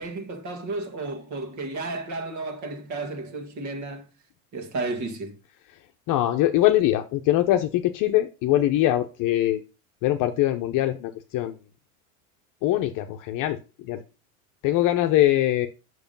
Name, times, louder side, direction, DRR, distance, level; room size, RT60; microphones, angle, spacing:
voice 1, 0.0-4.1 4.5-5.4, right 3 dB, 40° right, 2.0 m, -32 dB
voice 2, 6.1-9.6 10.0-11.5 12.6-14.0 14.6-15.7, left 14 dB, 45° left, 0.9 m, -22 dB
7.1 x 6.3 x 5.4 m
supercardioid pair, 115°, 43 cm